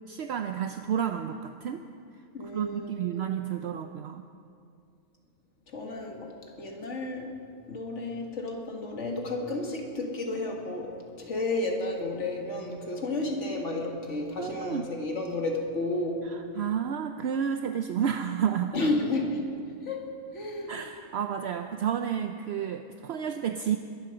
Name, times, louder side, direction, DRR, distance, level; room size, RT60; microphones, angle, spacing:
voice 1, 0.1-1.9 2.5-4.3 14.4-14.9 16.3-18.7 20.7-23.8, right 8 dB, 65° right, 7 dB, 0.8 m, -31 dB
voice 2, 2.3-3.2 5.7-7.4 7.7-16.3 18.7-19.5 19.8-20.8, left 2 dB, 75° left, 1 dB, 2.2 m, -32 dB
22.0 x 8.9 x 6.8 m, 2.4 s
omnidirectional pair, 1.3 m